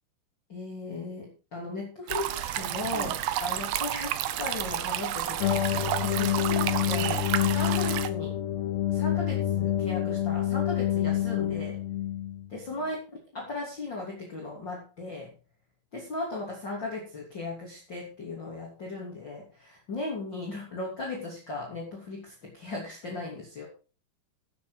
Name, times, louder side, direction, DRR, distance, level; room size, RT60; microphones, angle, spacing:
voice 1, 0.5-8.3 8.9-11.8 12.5-13.0 13.3-15.3 15.9-23.7, left 2 dB, 30° left, -2 dB, 3.3 m, -37 dB
sound 1, 2.1-8.1, right 12 dB, 75° right, 2.2 m, -31 dB
sound 2, 5.4-12.5, left 12 dB, 85° left, 3.2 m, -27 dB
14.5 x 8.2 x 4.9 m, 0.35 s
omnidirectional pair, 4.9 m